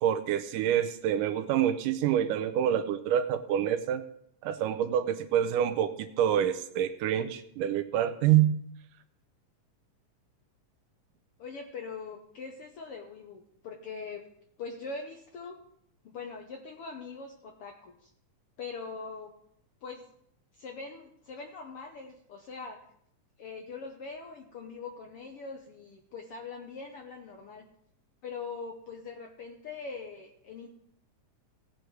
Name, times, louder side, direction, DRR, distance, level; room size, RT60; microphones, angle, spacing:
voice 1, 0.0-4.0 4.4-8.6, right 10 dB, 85° right, 10 dB, 2.3 m, -27 dB
voice 2, 11.4-14.2 14.6-15.6 16.0-18.1 18.6-19.3 19.8-20.0 20.6-22.8 23.4-27.6 28.2-30.7, left 4 dB, 70° left, 2 dB, 1.4 m, -42 dB
17.0 x 6.5 x 4.6 m, 0.71 s
omnidirectional pair, 3.7 m